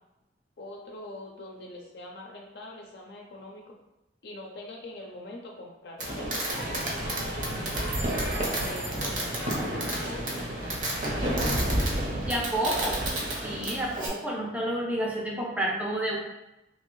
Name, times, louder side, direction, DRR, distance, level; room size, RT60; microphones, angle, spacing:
voice 1, 0.6-3.8 4.2-7.9 8.6-10.5 11.0-11.7 12.4-12.8, left 1 dB, 60° left, -1 dB, 0.5 m, -43 dB
Fireworks, 6.0-14.1, right 1 dB, 45° right, 0.7 m, -30 dB
sound 1, 6.5-11.7, right 1 dB, 80° right, 1.0 m, -37 dB
voice 2, 12.3-13.0 13.3-16.2, right 1 dB, 5° right, -2 dB, 0.5 m, -30 dB
2.9 x 2.7 x 3.0 m, 0.95 s
head